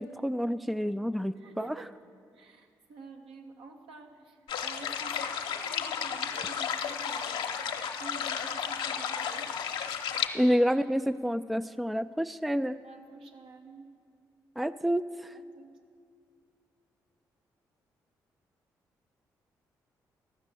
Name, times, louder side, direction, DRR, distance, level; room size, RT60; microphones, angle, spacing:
voice 1, 0.0-1.8 10.3-12.8 14.6-15.3, equal, ahead, 14 dB, 0.3 m, -28 dB
voice 2, 1.3-1.9 2.3-9.5 12.8-13.9 15.3-15.7, right 4 dB, 75° right, 2 dB, 1.1 m, -49 dB
sound 1, 4.5-10.3, left 7 dB, 75° left, 0.7 m, -33 dB
14.0 x 6.0 x 8.3 m, 2.3 s
hypercardioid pair, 45°, 9 cm